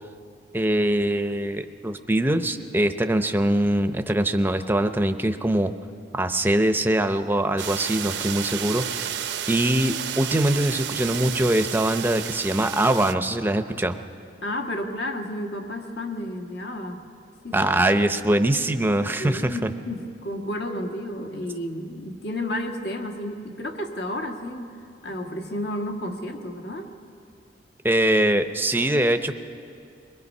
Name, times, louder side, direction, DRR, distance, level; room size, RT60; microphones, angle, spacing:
voice 1, 0.5-5.7 6.1-9.2 9.5-14.0 17.5-19.7 27.8-29.3, right 1 dB, 10° right, 8 dB, 0.6 m, -23 dB
sound 1, 7.6-13.1, right 9 dB, 70° right, 0.7 m, -31 dB
voice 2, 14.4-17.0 17.4-17.6 19.2-24.7 25.0-26.9, left 1 dB, 65° left, 3 dB, 1.6 m, -31 dB
23.0 x 21.0 x 5.5 m, 2.4 s
head